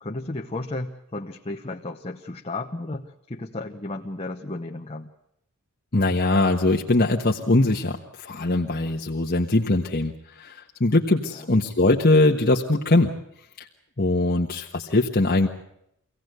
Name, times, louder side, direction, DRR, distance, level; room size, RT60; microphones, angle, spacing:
voice 1, 0.0-5.1 11.3-11.5, left 2 dB, 25° left, 2 dB, 1.0 m, -34 dB
voice 2, 5.9-13.1 14.0-15.5, left 2 dB, 40° left, 0 dB, 1.2 m, -21 dB
25.0 x 17.0 x 7.9 m, 0.77 s
head